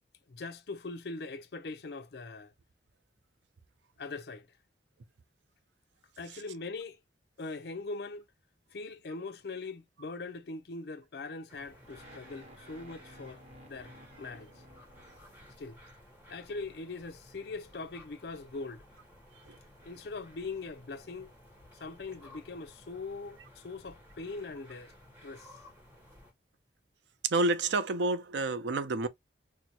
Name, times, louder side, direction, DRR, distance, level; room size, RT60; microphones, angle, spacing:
voice 1, 0.3-2.5 4.0-4.5 6.2-7.0 7.4-8.3 8.7-14.5 15.6-15.8 16.3-18.8 19.8-21.3 21.7-24.9 25.2-25.6, left 3 dB, 60° left, 0.5 m, -41 dB
sound 1, 11.5-26.3, left 1 dB, 10° right, 1.2 m, -56 dB
sound 2, 11.8-15.9, equal, 40° right, 1.0 m, -55 dB
voice 2, 27.2-29.1, right 2 dB, 80° right, 0.5 m, -29 dB
4.2 x 2.1 x 2.7 m
head